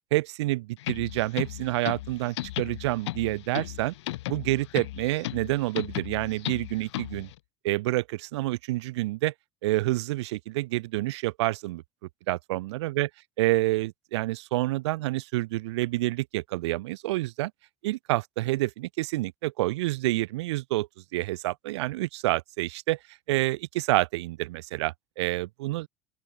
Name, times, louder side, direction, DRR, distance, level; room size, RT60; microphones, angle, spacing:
voice 1, 0.1-3.9 4.3-7.3 7.6-9.3 9.6-11.8 12.3-13.1 13.4-17.5 17.8-23.0 23.3-25.9, right 18 dB, 70° right, 1.3 m, -28 dB
sound 1, 0.8-7.3, left 17 dB, 70° left, 2.1 m, -36 dB
open air
figure-of-eight pair, 65°, 15 cm